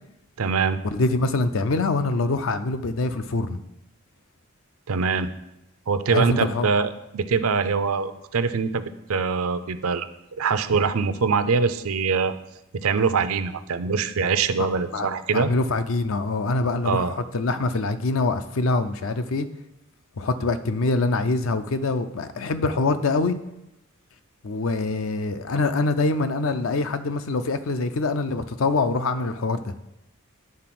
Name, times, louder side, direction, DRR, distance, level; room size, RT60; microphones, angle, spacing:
voice 1, 0.4-0.8 4.9-5.3 5.9-8.8 9.1-10.1 10.4-12.3 12.7-15.5 16.8-17.1, right 5 dB, 85° right, 11 dB, 0.5 m, -23 dB
voice 2, 0.9-3.6 6.1-6.7 14.6-14.7 14.9-15.1 15.3-19.5 20.2-23.4 24.4-29.9, left 3 dB, 65° left, 10 dB, 0.5 m, -24 dB
9.5 x 3.8 x 6.0 m, 0.91 s
head